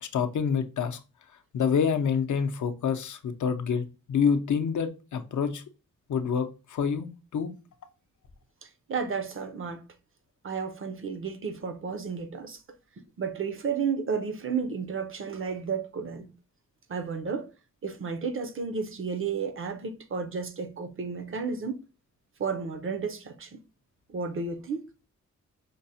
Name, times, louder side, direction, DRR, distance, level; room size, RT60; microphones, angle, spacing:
voice 1, 0.0-1.0 1.5-5.6 6.1-7.1 7.3-7.5, left 6 dB, 70° left, 0.5 m, -27 dB
voice 2, 8.6-9.8 10.4-12.6 13.2-16.3 16.9-17.5 17.8-21.8 22.4-23.6 24.1-24.9, right 5 dB, 45° right, 0.5 m, -32 dB
5.1 x 2.0 x 2.6 m
wide cardioid pair, 115°, 31 cm